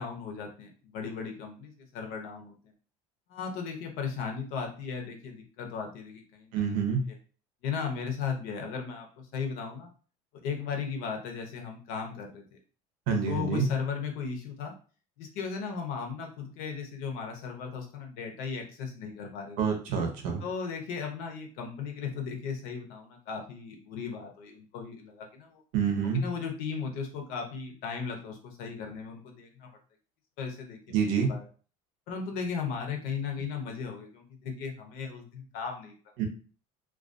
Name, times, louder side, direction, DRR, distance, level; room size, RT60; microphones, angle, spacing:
voice 1, 0.0-2.5 3.3-6.5 7.6-9.9 10.4-12.6 13.3-14.7 15.2-19.6 20.4-25.6 26.0-29.7 30.4-30.9 31.3-31.4 32.1-35.9, left 6 dB, 80° left, 3 dB, 0.7 m, -36 dB
voice 2, 6.5-7.0 13.1-13.7 19.6-20.4 25.7-26.2 30.9-31.3 36.2-36.3, right 6 dB, 80° right, 3 dB, 0.7 m, -27 dB
2.3 x 2.3 x 2.5 m, 0.39 s
cardioid pair, 145°, 14 cm